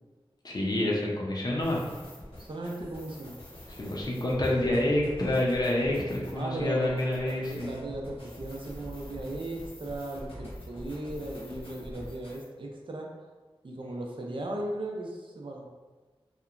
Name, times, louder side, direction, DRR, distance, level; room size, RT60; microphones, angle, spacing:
voice 1, 0.4-1.8 3.8-7.8, left 1 dB, 40° left, -3 dB, 0.5 m, -28 dB
sound 1, 1.5-12.5, equal, 70° left, 0.9 m, -45 dB
voice 2, 2.4-3.3 6.3-7.0 7.2-13.1 13.6-15.6, right 1 dB, 60° right, -1 dB, 0.5 m, -37 dB
2.8 x 2.2 x 2.4 m, 1.3 s
wide cardioid pair, 75°, 10 cm